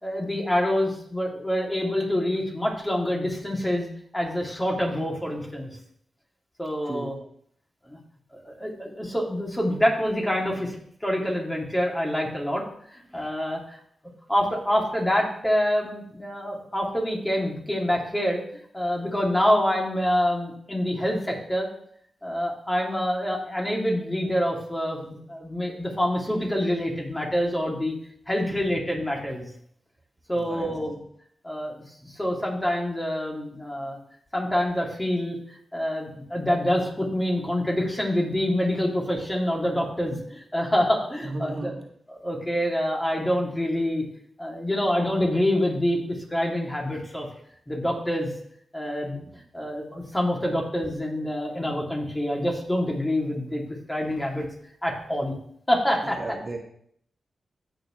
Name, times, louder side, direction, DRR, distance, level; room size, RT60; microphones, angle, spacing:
voice 1, 0.0-3.9 4.1-5.7 6.6-7.1 7.9-8.0 8.3-10.7 11.0-12.6 12.9-13.8 14.3-18.4 18.7-21.7 22.2-27.9 28.3-29.5 30.3-31.0 31.4-34.0 34.3-35.4 35.7-41.7 42.1-44.0 44.4-47.3 47.7-48.3 48.7-49.2 49.5-53.6 53.9-54.5 54.8-55.3 55.7-56.2, left 1 dB, 15° left, -2 dB, 3.0 m, -26 dB
voice 2, 6.8-7.2 30.3-30.7 40.1-40.3 41.2-41.9 49.2-49.3 56.0-56.6, right 2 dB, 45° right, 1 dB, 1.8 m, -35 dB
15.0 x 6.3 x 3.3 m, 0.67 s
cardioid pair, 55°, 0 cm